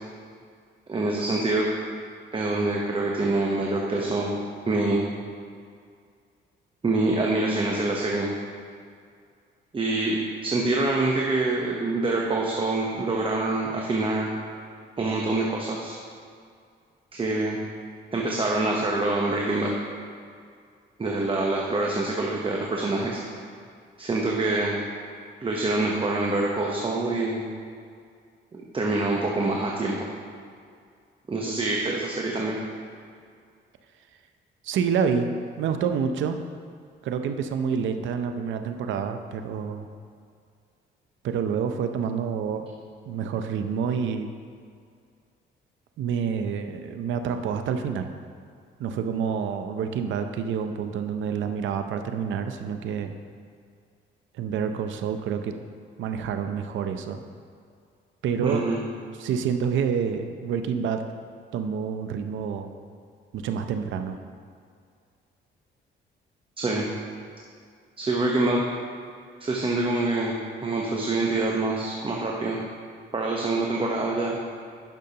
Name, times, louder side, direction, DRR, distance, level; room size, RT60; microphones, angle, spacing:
voice 1, 0.9-1.7 2.3-4.4 4.7-5.1 6.8-8.3 9.7-14.3 15.0-16.0 17.1-17.6 18.1-19.7 21.0-23.2 24.0-24.8 25.4-27.4 28.5-30.1 31.3-32.6 58.4-58.8 66.6-66.9 68.0-68.6 69.4-70.3 70.6-72.6 73.1-74.4, right 2 dB, 25° right, -1 dB, 0.9 m, -25 dB
voice 2, 34.6-35.3 35.6-36.4 37.0-39.9 41.2-42.7 43.1-44.3 46.0-48.1 48.8-53.2 54.4-55.5 56.0-57.2 58.2-58.7 59.2-61.0 61.5-62.7 63.3-64.2, right 7 dB, 75° right, 7 dB, 0.6 m, -28 dB
10.5 x 6.4 x 2.9 m, 2.2 s
cardioid pair, 90°, 20 cm